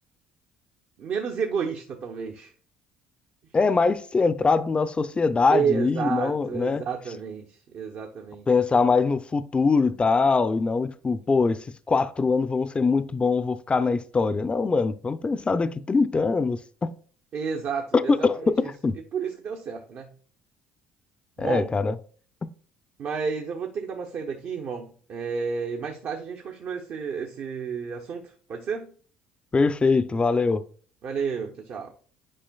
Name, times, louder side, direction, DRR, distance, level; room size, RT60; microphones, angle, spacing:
voice 1, 1.0-2.5 5.5-8.5 17.3-18.7 19.1-20.1 21.4-21.7 23.0-28.9 31.0-31.9, right 6 dB, 55° right, 0.8 m, -31 dB
voice 2, 3.5-6.8 8.5-16.9 17.9-18.9 21.4-21.9 22.4-22.5 29.5-30.6, left 4 dB, 25° left, 0.5 m, -23 dB
8.8 x 5.0 x 2.3 m
hypercardioid pair, 65°, 4 cm